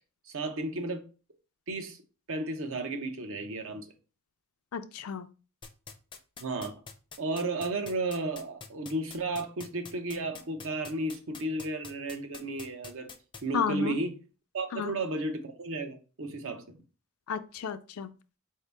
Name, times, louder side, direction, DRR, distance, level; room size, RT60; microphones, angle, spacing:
voice 1, 0.3-1.0 1.7-2.0 2.3-3.9 6.4-6.7 7.2-13.1 13.4-14.2 14.5-16.8, right 2 dB, 65° right, 0.7 m, -33 dB
voice 2, 4.7-5.3 13.5-14.0 14.7-14.9 17.3-18.1, left 6 dB, 90° left, 0.4 m, -32 dB
sound 1, 5.6-13.4, left 5 dB, 20° left, 0.4 m, -44 dB
4.4 x 2.7 x 3.3 m
head